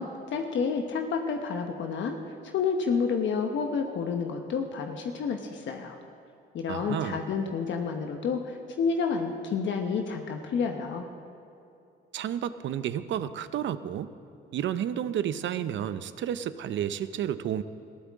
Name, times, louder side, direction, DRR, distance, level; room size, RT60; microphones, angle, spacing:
voice 1, 0.0-2.2 2.4-5.9 6.5-11.0, left 5 dB, 70° left, 4 dB, 1.1 m, -29 dB
voice 2, 6.7-7.3 12.1-14.1 14.5-17.6, right 10 dB, 70° right, 13 dB, 0.7 m, -31 dB
20.5 x 15.0 x 3.7 m, 2.7 s
cardioid pair, 90°, 20 cm